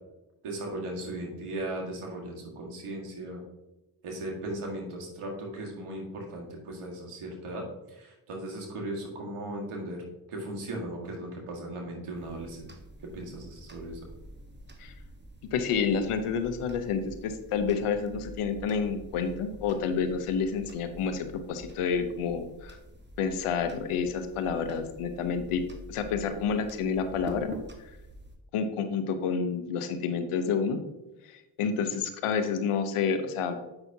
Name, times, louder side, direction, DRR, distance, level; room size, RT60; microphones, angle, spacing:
voice 1, 0.4-3.4 4.0-10.0 10.3-12.7 13.1-14.0, right 1 dB, 85° right, 0 dB, 1.8 m, -37 dB
sound 1, 12.1-28.4, right 1 dB, 20° right, 1.1 m, -47 dB
voice 2, 15.5-22.8 23.2-25.6 25.9-27.6 28.5-30.8 31.3-33.6, left 6 dB, 90° left, 8 dB, 0.8 m, -29 dB
7.8 x 5.8 x 2.7 m, 0.99 s
supercardioid pair, 50°, 49 cm